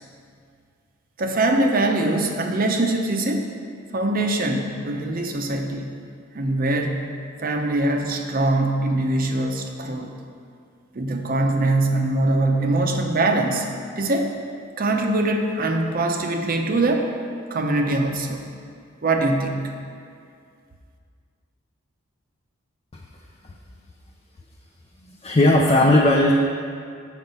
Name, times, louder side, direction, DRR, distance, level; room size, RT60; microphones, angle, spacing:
voice 1, 1.2-3.5 3.9-5.9 6.3-7.0 7.4-10.1 10.9-13.7 14.0-14.3 14.8-17.1 17.5-18.4 19.0-19.7, right 2 dB, 45° right, 3 dB, 0.7 m, -22 dB
voice 2, 25.0-26.3, left 1 dB, 30° left, -1 dB, 0.5 m, -17 dB
7.2 x 5.9 x 5.3 m, 2.3 s
head